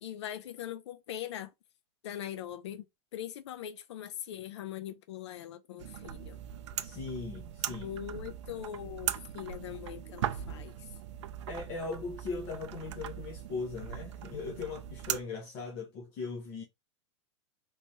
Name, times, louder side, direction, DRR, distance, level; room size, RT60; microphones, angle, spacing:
voice 1, 0.0-1.5 2.0-2.9 3.1-6.4 7.8-10.9, left 11 dB, 70° left, 0.4 m, -41 dB
sound 1, 5.8-15.2, right 11 dB, 70° right, 0.4 m, -39 dB
voice 2, 6.8-7.9 11.5-16.6, left 4 dB, 30° left, 0.8 m, -39 dB
3.2 x 3.1 x 2.7 m
supercardioid pair, 175°, 15 cm